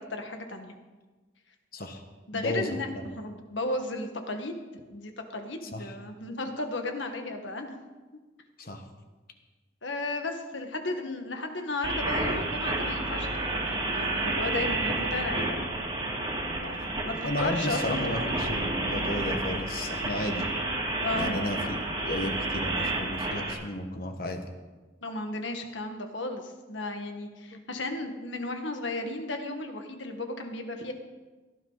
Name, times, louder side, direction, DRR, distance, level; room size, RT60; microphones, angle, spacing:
voice 1, 0.1-0.7 2.3-4.6 4.9-7.8 9.8-15.6 16.6-18.0 20.9-21.3 25.0-30.9, left 2 dB, 75° left, 5 dB, 1.7 m, -34 dB
voice 2, 2.3-3.1 5.7-5.9 8.6-8.8 17.2-20.5 21.1-24.4 27.5-27.6, left 1 dB, 50° left, 5 dB, 1.5 m, -33 dB
sound 1, 11.8-23.5, right 2 dB, 25° right, 2.3 m, -30 dB
17.5 x 12.5 x 4.1 m, 1.3 s
head